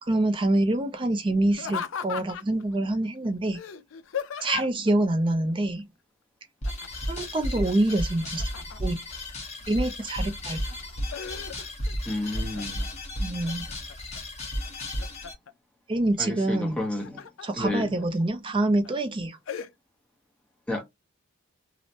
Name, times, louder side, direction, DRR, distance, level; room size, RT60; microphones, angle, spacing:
voice 1, 0.0-3.6 4.4-5.9 7.1-8.5 8.8-9.0 9.7-10.6 13.2-13.7 15.9-16.8 17.4-19.4, right 1 dB, 25° right, 0.4 m, -26 dB
Laughter, 1.5-2.6 3.5-4.9 6.6-7.1 7.4-9.0 9.6-10.2 10.7-11.9 12.3-12.9 13.4-14.2 14.6-15.5 16.7-17.5 18.0-18.1 18.6-18.9 19.5-19.7, left 8 dB, 65° left, 0.4 m, -37 dB
sound 1, 6.6-15.3, equal, 30° left, 1.0 m, -33 dB
voice 2, 12.1-12.8 16.2-17.2 17.5-17.9 20.7-20.8, left 1 dB, 5° left, 0.7 m, -30 dB
3.1 x 2.1 x 2.7 m
head